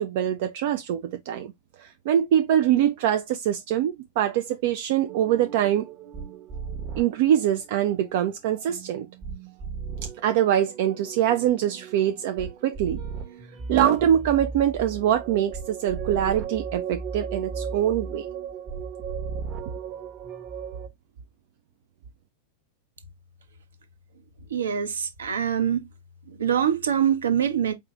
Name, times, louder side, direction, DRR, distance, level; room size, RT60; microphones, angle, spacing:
voice 1, 0.0-1.5 1.8-5.9 7.0-9.1 10.2-13.0 13.7-18.3, right 10 dB, 50° right, 0.4 m, -23 dB
sound 1, 5.1-20.9, right 6 dB, 35° right, 0.9 m, -36 dB
voice 2, 24.5-25.9 26.3-27.7, right 8 dB, 65° right, 0.8 m, -24 dB
4.7 x 2.7 x 3.5 m
figure-of-eight pair, 90°, 0 cm